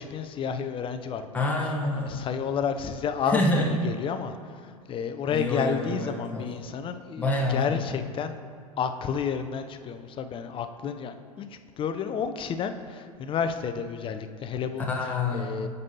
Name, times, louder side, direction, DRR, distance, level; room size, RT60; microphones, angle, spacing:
voice 1, 0.0-1.5 2.0-3.4 3.8-8.4 8.8-11.5 11.8-14.8 15.3-15.7, left 7 dB, 30° left, 9 dB, 0.5 m, -31 dB
voice 2, 1.3-2.2 3.3-3.7 5.3-6.5 7.2-7.8 14.9-15.6, left 2 dB, 10° left, -3 dB, 1.1 m, -27 dB
13.5 x 5.4 x 2.8 m, 2.2 s
figure-of-eight pair, 85°, 19 cm